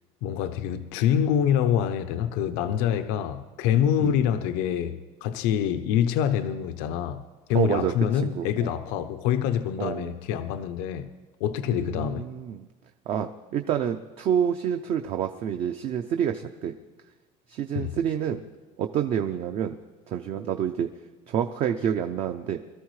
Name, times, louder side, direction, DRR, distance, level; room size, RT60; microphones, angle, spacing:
voice 1, 0.2-7.2 7.5-11.1 11.4-12.2 17.7-18.0, left 9 dB, 90° left, 10 dB, 0.7 m, -26 dB
voice 2, 7.5-7.9 8.2-8.7 9.8-10.1 11.7-12.7 13.1-16.7 17.5-18.4 18.8-19.8 20.1-20.9 21.3-22.6, right 9 dB, 40° right, 6 dB, 0.5 m, -28 dB
22.5 x 13.5 x 3.2 m, 1.3 s
cardioid pair, 170°, 15 cm